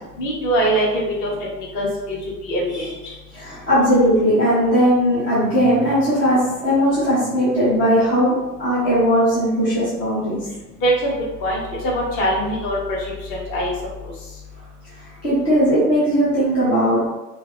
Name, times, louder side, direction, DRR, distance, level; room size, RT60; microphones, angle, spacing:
voice 1, 0.2-1.3 1.6-2.2 2.4-2.9 10.8-11.1 11.4-13.0 13.3-13.7, right 1 dB, 35° left, -4 dB, 1.2 m, -22 dB
voice 2, 3.3-10.4 15.0-17.1, equal, 10° left, -12 dB, 0.3 m, -18 dB
2.8 x 2.3 x 3.6 m, 1.1 s
figure-of-eight pair, 95°, 49 cm